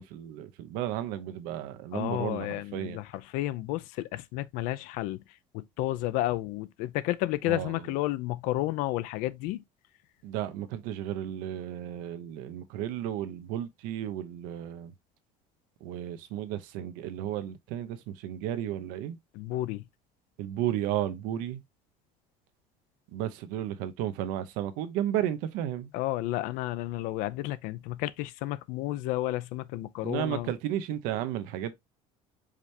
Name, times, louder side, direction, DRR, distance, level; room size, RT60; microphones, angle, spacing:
voice 1, 0.0-3.0 7.5-7.7 10.2-14.9 15.8-19.2 20.4-21.6 23.1-25.9 30.0-31.7, right 11 dB, 85° right, 0.8 m, -33 dB
voice 2, 1.9-5.2 5.5-9.6 19.3-19.8 25.9-30.5, left 16 dB, 80° left, 0.5 m, -31 dB
4.9 x 3.3 x 2.8 m
cardioid pair, 160°, 14 cm